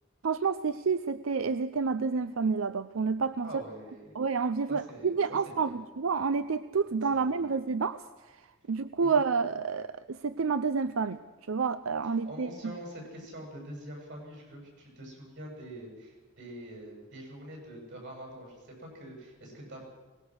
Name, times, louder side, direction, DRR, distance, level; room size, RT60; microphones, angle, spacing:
voice 1, 0.2-3.6 4.1-8.0 8.7-11.2 11.5-12.7, right 5 dB, 80° right, 12 dB, 0.6 m, -29 dB
voice 2, 3.4-4.2 4.7-5.8 6.8-7.5 9.0-9.2 12.3-19.8, right 1 dB, 65° right, 0 dB, 7.6 m, -45 dB
23.0 x 19.5 x 6.4 m, 1.2 s
head